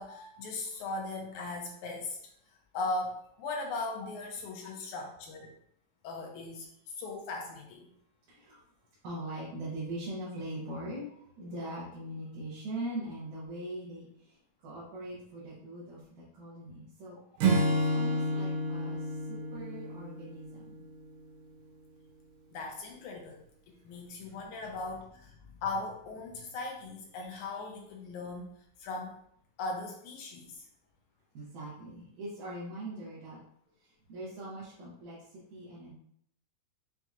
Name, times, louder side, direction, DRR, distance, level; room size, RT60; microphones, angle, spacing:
voice 1, 0.0-2.2 2.7-5.5 6.0-7.9 22.5-23.4 23.7-28.5 28.8-29.2 29.6-30.7, left 3 dB, 80° left, 1 dB, 1.8 m, -38 dB
voice 2, 8.3-8.6 9.0-17.2 17.7-20.8 31.3-33.4 33.8-35.2 35.5-35.9, right 1 dB, 75° right, -8 dB, 2.4 m, -41 dB
Acoustic guitar / Strum, 17.4-20.9, right 1 dB, 90° right, 2.5 m, -30 dB
6.1 x 2.8 x 2.4 m, 0.70 s
omnidirectional pair, 3.8 m